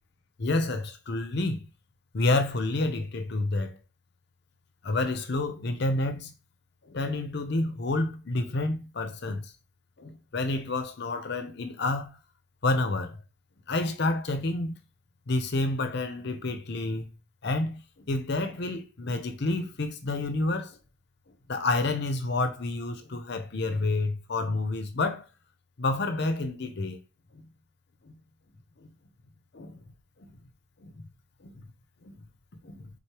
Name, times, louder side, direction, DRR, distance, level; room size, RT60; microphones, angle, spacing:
voice 1, 0.4-1.6 2.1-3.8 4.8-6.3 6.9-9.5 10.0-12.1 12.6-13.2 13.7-14.7 15.3-17.1 17.4-17.8 18.1-20.8 21.5-25.3 25.8-27.0 27.3-27.4 28.0-28.1 28.8-28.9 29.5-29.8 30.3-30.4 30.8-31.1 31.4-31.5 32.1-32.2 32.6-32.9, left 2 dB, 60° left, 0.6 m, -29 dB
4.1 x 3.2 x 2.9 m
head